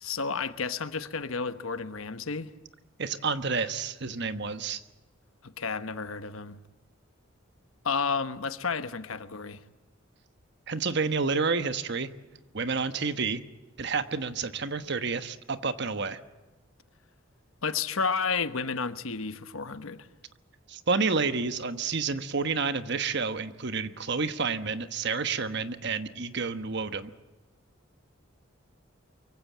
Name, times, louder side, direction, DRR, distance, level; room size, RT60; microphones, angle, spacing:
voice 1, 0.0-2.5 5.4-6.6 7.8-9.6 17.6-20.1, left 5 dB, 85° left, 1.2 m, -31 dB
voice 2, 3.0-4.8 10.7-12.1 12.5-13.4 13.8-16.2 20.7-27.1, right 4 dB, 55° right, 1.2 m, -29 dB
24.0 x 16.0 x 9.2 m
head